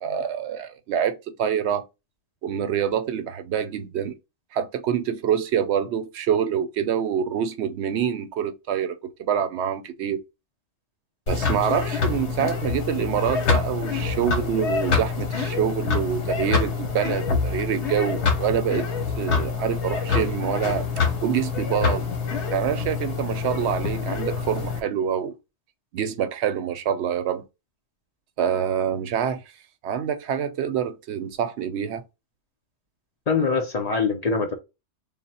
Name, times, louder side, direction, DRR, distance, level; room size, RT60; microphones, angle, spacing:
voice 1, 0.0-1.8 2.4-4.1 4.5-10.2 11.3-18.9 19.2-20.9 21.2-22.1 22.5-25.3 25.9-27.4 28.4-29.4 29.8-32.0, right 8 dB, 75° right, 0.8 m, -26 dB
sound 1, 11.3-24.8, left 5 dB, 75° left, 1.1 m, -26 dB
voice 2, 33.3-34.5, left 4 dB, 45° left, 0.6 m, -23 dB
3.5 x 2.1 x 4.1 m
omnidirectional pair, 1.1 m